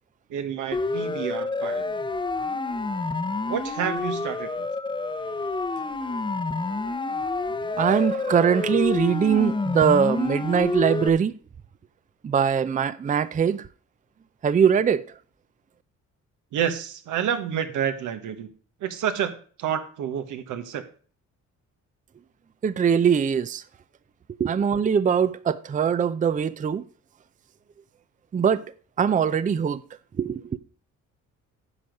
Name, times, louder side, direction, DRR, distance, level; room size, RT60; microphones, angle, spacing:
voice 1, 0.3-1.9 3.5-4.7 16.5-18.5 18.8-19.3 19.6-20.8, right 9 dB, 85° right, 1.4 m, -29 dB
Siren, 0.7-11.1, left 3 dB, 15° left, 0.8 m, -28 dB
voice 2, 7.8-11.3 12.2-13.7 14.4-15.1 22.6-23.6 24.4-26.8 28.3-28.7 29.0-29.8 30.2-30.6, right 7 dB, 25° right, 0.5 m, -22 dB
9.9 x 6.3 x 5.3 m
cardioid pair, 90°, 30 cm